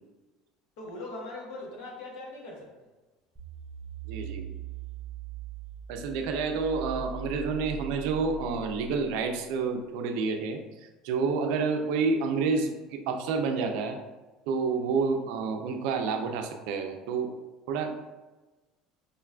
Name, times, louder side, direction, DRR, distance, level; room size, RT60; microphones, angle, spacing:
voice 1, 0.8-2.9, left 2 dB, 70° left, -2 dB, 1.0 m, -41 dB
sound 1, 3.4-9.6, right 6 dB, 10° right, 0.6 m, -41 dB
voice 2, 4.1-4.5 5.9-10.6 11.0-14.0 14.5-17.3 17.7-18.0, right 4 dB, 75° right, 4 dB, 0.4 m, -29 dB
4.9 x 2.3 x 2.2 m, 1.2 s
cardioid pair, 145°, 0 cm